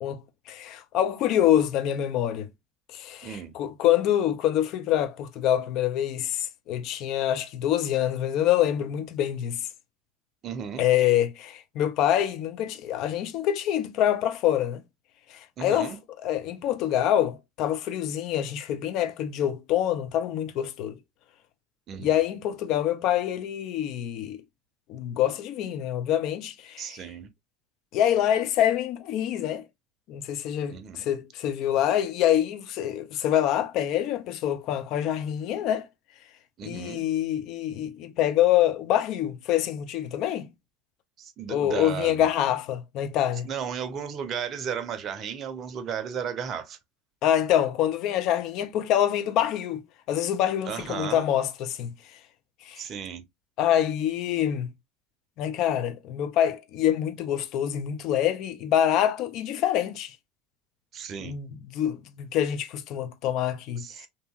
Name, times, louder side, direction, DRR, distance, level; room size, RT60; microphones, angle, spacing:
voice 1, 0.0-2.5 2.9-9.6 10.8-14.8 15.3-15.9 16.2-21.0 22.0-24.4 24.9-26.9 27.9-29.6 30.1-35.9 36.6-40.5 41.5-43.5 47.2-49.8 50.1-51.9 52.6-52.8 53.6-54.7 55.4-60.1 61.2-64.1, left 11 dB, 55° left, 0.5 m, -26 dB
voice 2, 3.2-3.5 10.4-10.9 15.6-16.0 21.9-22.2 26.8-27.3 30.7-31.0 36.6-37.0 41.2-42.3 43.4-46.8 50.7-51.3 52.8-53.2 60.9-61.4 63.8-64.1, right 7 dB, 45° right, 0.6 m, -34 dB
2.7 x 2.6 x 2.2 m
hypercardioid pair, 75°, 0 cm